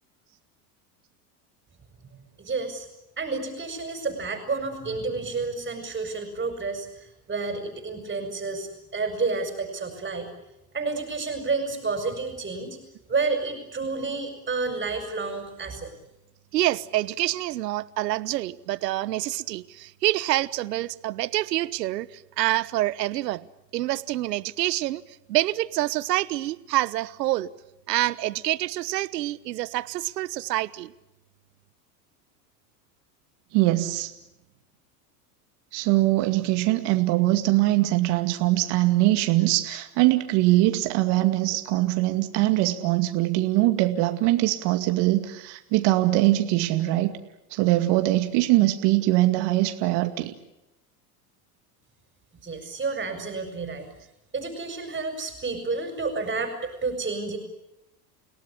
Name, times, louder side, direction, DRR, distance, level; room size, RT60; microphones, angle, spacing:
voice 1, 2.4-2.9 3.2-10.3 10.7-12.8 13.1-15.9 52.4-53.9 54.3-57.4, right 4 dB, 20° right, 4 dB, 5.6 m, -30 dB
voice 2, 16.5-23.5 23.7-25.0 25.3-27.5 27.9-30.9, right 16 dB, 85° right, 17 dB, 1.2 m, -27 dB
voice 3, 33.5-34.1 35.7-47.1 47.5-50.3, right 17 dB, 55° right, 6 dB, 2.3 m, -22 dB
30.0 x 17.5 x 10.0 m, 0.91 s
supercardioid pair, 105°, 48 cm